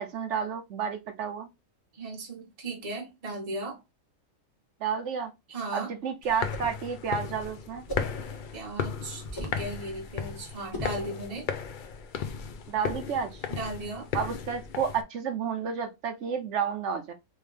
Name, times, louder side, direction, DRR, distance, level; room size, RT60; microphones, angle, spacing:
voice 1, 0.0-1.5 4.8-5.3 5.7-7.8 12.7-13.4 14.1-17.1, right 7 dB, 60° right, 1.0 m, -31 dB
voice 2, 1.9-3.8 5.5-5.9 8.5-11.5 13.5-14.1, right 2 dB, 30° right, 1.1 m, -36 dB
sound 1, 6.2-15.0, left 6 dB, 75° left, 0.4 m, -35 dB
sound 2, 6.3-6.8 7.9-8.2 9.2-9.7 10.7-11.1, equal, 20° left, 0.7 m, -37 dB
3.4 x 3.1 x 3.3 m
omnidirectional pair, 1.5 m